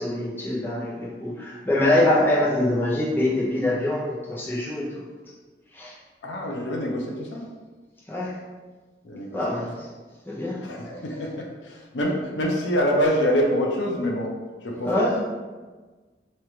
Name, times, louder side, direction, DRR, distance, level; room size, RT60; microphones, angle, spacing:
voice 1, 0.0-5.0 5.7-6.0 8.1-8.4 9.3-9.9 10.3-10.6 14.8-15.2, left 1 dB, 10° left, -5 dB, 0.6 m, -24 dB
voice 2, 6.2-7.4 9.0-9.4 10.6-14.3 14.6-15.0, equal, 85° left, 0 dB, 0.6 m, -25 dB
3.1 x 2.5 x 4.3 m, 1.3 s
head